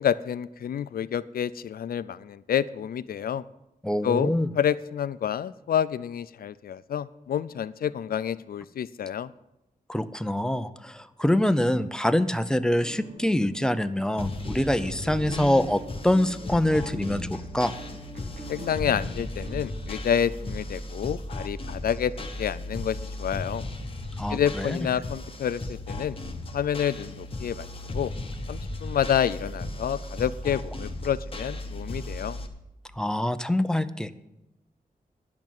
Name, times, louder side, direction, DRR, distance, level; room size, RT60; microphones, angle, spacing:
voice 1, 0.0-3.4 4.0-9.3 18.5-23.6 24.3-26.2 26.5-27.7 27.9-28.1 28.5-32.4, left 9 dB, 80° left, 14 dB, 0.4 m, -28 dB
voice 2, 3.8-4.5 9.9-17.7 24.2-24.8 33.0-34.1, left 1 dB, 5° left, 11 dB, 0.5 m, -25 dB
sound 1, 12.7-20.4, right 1 dB, 60° right, 2.5 m, -42 dB
sound 2, 14.2-32.5, left 1 dB, 40° left, 1.1 m, -36 dB
10.5 x 6.0 x 8.9 m, 0.91 s
wide cardioid pair, 125°, 15 cm